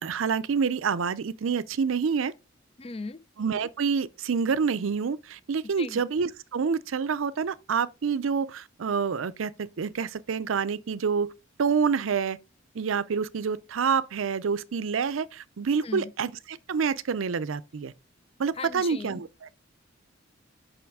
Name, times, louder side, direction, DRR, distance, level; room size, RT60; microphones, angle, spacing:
voice 1, 0.0-2.3 3.4-11.3 11.6-12.4 12.7-17.9 18.4-19.5, right 6 dB, 85° right, 0.5 m, -27 dB
voice 2, 2.8-3.2 5.6-6.0 15.8-16.1 18.6-19.2, left 4 dB, 30° left, 0.4 m, -38 dB
7.0 x 5.6 x 3.5 m
head